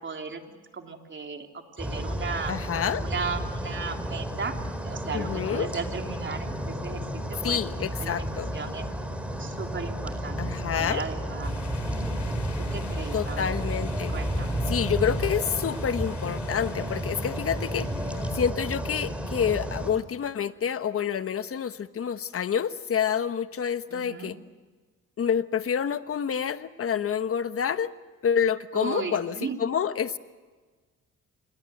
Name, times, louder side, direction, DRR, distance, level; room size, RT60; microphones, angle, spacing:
voice 1, 0.0-1.5 1.8-2.6 3.0-4.6 4.8-7.6 8.0-8.9 9.4-10.4 10.7-12.0 12.6-13.5 14.1-14.6 23.9-24.3 28.7-29.6, right 5 dB, 40° right, 4 dB, 3.2 m, -36 dB
sound 1, 1.8-19.9, equal, 5° right, 4.6 m, -32 dB
voice 2, 2.5-3.0 5.1-5.7 7.4-8.5 10.4-11.0 13.1-14.2 14.7-17.9 18.3-24.3 25.2-27.9 28.2-30.2, left 8 dB, 50° left, 11 dB, 1.3 m, -28 dB
sound 2, 11.4-18.3, left 8 dB, 70° left, 3.5 m, -47 dB
27.5 x 22.0 x 8.0 m, 1.4 s
cardioid pair, 90°, 30 cm